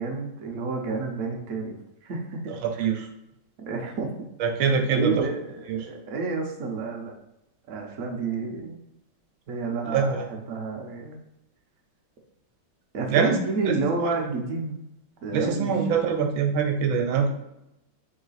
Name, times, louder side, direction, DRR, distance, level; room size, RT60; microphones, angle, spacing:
voice 1, 0.0-1.7 2.0-2.9 3.7-4.1 4.9-7.1 7.7-8.8 9.5-11.2 12.9-14.8 15.2-15.7, right 4 dB, 55° right, 0 dB, 1.0 m, -30 dB
voice 2, 2.6-3.1 4.4-5.1 5.7-5.8 9.9-10.2 13.1-13.3 13.7-13.8 15.3-17.3, right 6 dB, 85° right, 4 dB, 1.5 m, -24 dB
3.9 x 3.2 x 4.0 m, 0.84 s
omnidirectional pair, 2.1 m